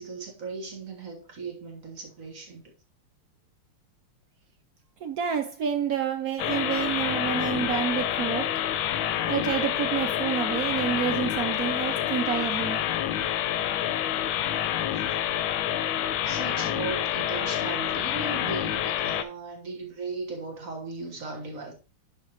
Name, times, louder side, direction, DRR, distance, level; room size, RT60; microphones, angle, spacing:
voice 1, 0.0-2.6 16.2-21.7, right 3 dB, 45° right, 1.5 m, -37 dB
voice 2, 5.0-8.5 9.3-12.8, right 8 dB, 75° right, 0.8 m, -28 dB
sound 1, 6.4-19.2, left 11 dB, 80° left, 1.4 m, -28 dB
10.5 x 4.7 x 2.9 m
omnidirectional pair, 2.3 m